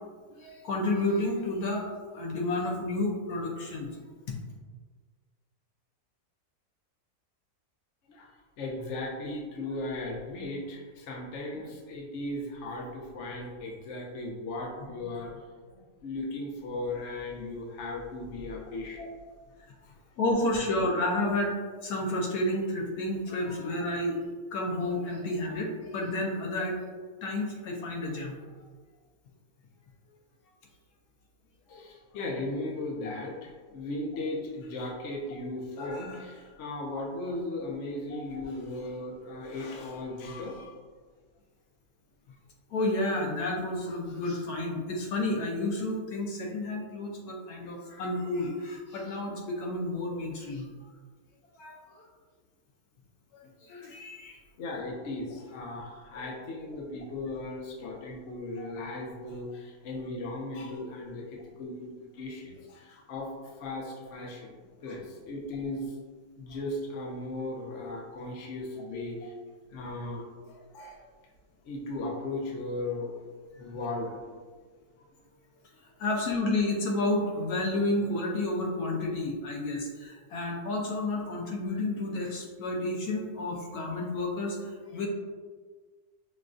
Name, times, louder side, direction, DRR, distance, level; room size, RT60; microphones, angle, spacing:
voice 1, 0.4-1.9 2.1-3.9 19.0-19.1 20.2-21.5 21.8-24.2 24.5-26.8 27.2-28.6 31.9-32.0 33.0-33.1 38.1-38.4 42.7-50.7 51.5-52.1 53.3-54.4 56.1-56.2 58.6-58.7 68.9-69.0 73.5-73.6 76.0-85.1, left 2 dB, 75° left, -1 dB, 1.1 m, -31 dB
voice 2, 8.6-19.1 31.7-40.7 54.6-66.0 66.4-69.3 69.7-71.0 71.6-73.1 73.6-74.2, left 2 dB, 60° left, -2 dB, 0.9 m, -37 dB
6.0 x 2.2 x 2.5 m, 1.5 s
omnidirectional pair, 1.7 m